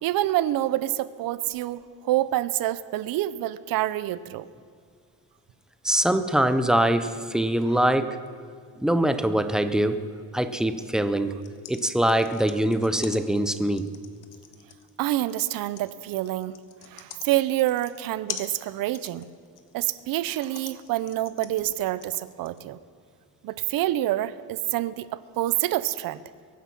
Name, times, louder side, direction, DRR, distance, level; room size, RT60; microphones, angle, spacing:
voice 1, 0.0-4.5 15.0-16.5 16.8-19.2 19.7-22.8 23.4-26.2, right 14 dB, 60° right, 15 dB, 0.6 m, -27 dB
voice 2, 5.8-8.2 8.8-10.0 10.3-11.4 11.7-13.9, right 1 dB, ahead, 9 dB, 0.3 m, -23 dB
sound 1, 11.3-22.6, left 9 dB, 55° left, 1.2 m, -43 dB
22.5 x 9.4 x 6.0 m, 2.1 s
cardioid pair, 170°, 39 cm